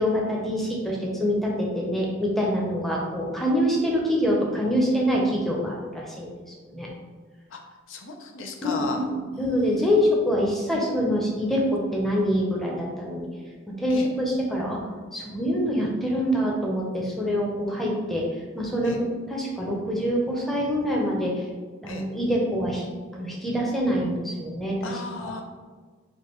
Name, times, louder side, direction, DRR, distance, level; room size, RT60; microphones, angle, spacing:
voice 1, 0.0-6.3 6.7-6.9 8.6-13.3 13.8-14.8 15.1-18.3 18.5-21.4 21.8-22.8 23.1-25.3, equal, ahead, -3 dB, 0.7 m, -25 dB
voice 2, 7.9-9.0 9.3-10.2 13.9-14.1 18.8-19.0 21.9-22.1 24.8-25.4, left 3 dB, 65° left, 2 dB, 0.6 m, -35 dB
5.1 x 2.3 x 4.4 m, 1.5 s
head